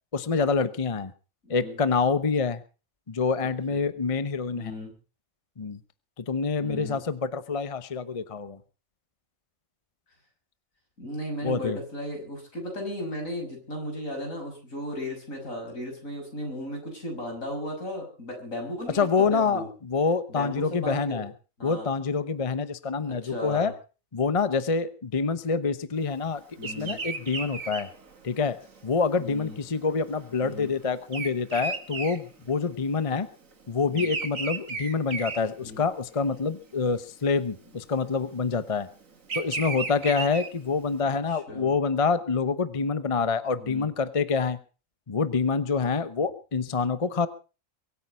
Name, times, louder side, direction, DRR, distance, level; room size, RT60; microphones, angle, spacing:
voice 1, 0.1-1.1 1.5-2.6 3.1-4.7 5.6-5.8 6.2-8.6 11.4-11.8 18.9-21.3 21.6-23.7 24.1-27.9 28.2-28.6 28.8-33.3 33.7-38.9 39.3-44.6 45.1-47.3, left 5 dB, 30° left, 14 dB, 0.9 m, -26 dB
voice 2, 1.4-1.8 3.7-3.9 4.5-4.9 6.6-7.0 11.0-19.7 20.3-21.2 21.6-21.9 23.0-23.7 26.6-27.0 29.2-29.6 30.4-30.7 33.9-34.1 35.6-35.8 41.3-41.7 43.6-43.9, equal, 75° left, 2 dB, 6.7 m, -36 dB
Bird vocalization bird call bird song, 26.6-33.0 33.3-36.2 36.6-37.0 38.0-40.9, right 4 dB, 75° right, 2.6 m, -35 dB
23.5 x 9.2 x 5.6 m, 0.36 s
omnidirectional pair, 1.4 m